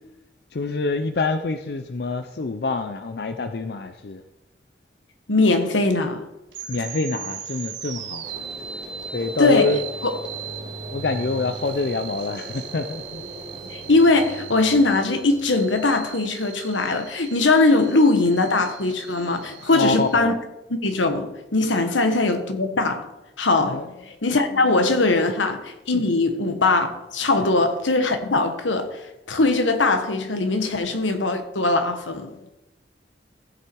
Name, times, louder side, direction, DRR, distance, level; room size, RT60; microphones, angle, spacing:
voice 1, 0.5-4.2 6.7-8.3 9.1-9.9 10.9-13.2 18.4-18.5 18.9-19.0 19.3-20.4 21.8-22.0 23.7-24.2 24.6-24.8 27.3-27.8 32.3-32.5, left 3 dB, 55° left, 0.5 m, -27 dB
voice 2, 5.3-6.2 9.4-9.7 10.0-10.1 13.7-20.3 20.7-23.1 23.4-23.8 24.2-29.0 29.3-32.3, left 3 dB, 90° left, 1.3 m, -20 dB
sound 1, 6.5-20.2, right 8 dB, 80° right, 1.2 m, -39 dB
sound 2, 8.2-15.8, right 1 dB, 45° right, 3.1 m, -39 dB
15.0 x 6.0 x 4.6 m
head